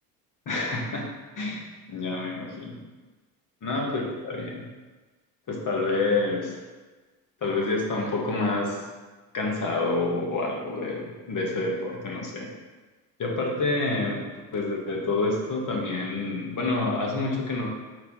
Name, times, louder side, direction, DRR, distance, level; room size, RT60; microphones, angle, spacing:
voice 1, 0.5-1.1 1.4-2.8 3.6-4.6 5.5-6.6 7.4-8.8 9.3-12.5 13.2-14.2 14.5-17.7, left 3 dB, 40° left, -1 dB, 2.1 m, -28 dB
5.8 x 4.4 x 5.7 m, 1.3 s
hypercardioid pair, 75°, 48 cm